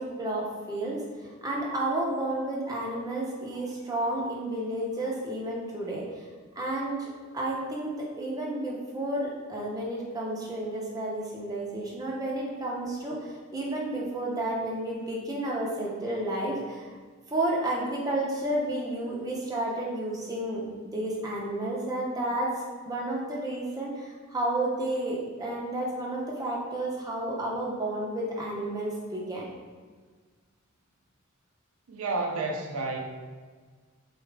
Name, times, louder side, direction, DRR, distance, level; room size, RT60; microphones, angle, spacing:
voice 1, 0.0-6.0 6.5-16.9 17.3-22.5 22.9-29.5, right 1 dB, 15° right, -4 dB, 0.6 m, -31 dB
voice 2, 31.9-33.0, right 3 dB, 90° right, 1 dB, 0.5 m, -30 dB
4.0 x 2.4 x 3.3 m, 1.5 s
head